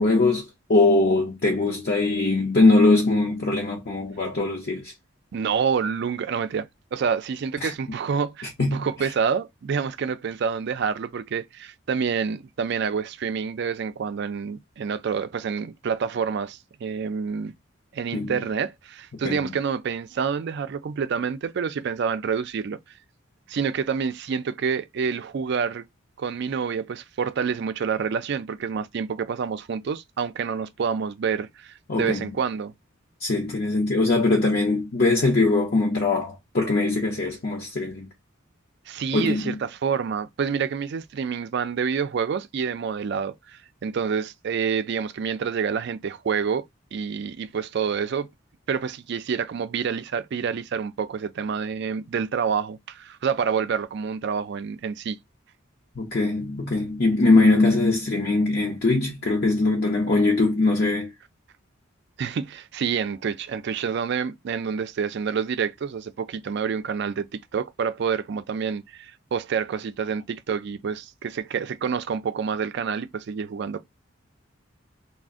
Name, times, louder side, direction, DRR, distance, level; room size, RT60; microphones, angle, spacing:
voice 1, 0.0-4.9 7.6-7.7 8.6-9.1 18.1-18.4 19.2-19.5 31.9-32.3 33.2-38.1 39.1-39.6 56.0-61.1, left 2 dB, 50° left, 0.6 m, -21 dB
voice 2, 5.3-17.5 17.9-22.8 23.5-25.8 26.2-32.7 38.9-46.6 46.9-48.3 48.7-55.2 62.2-73.8, right 6 dB, 55° right, 0.3 m, -28 dB
2.5 x 2.0 x 3.5 m
head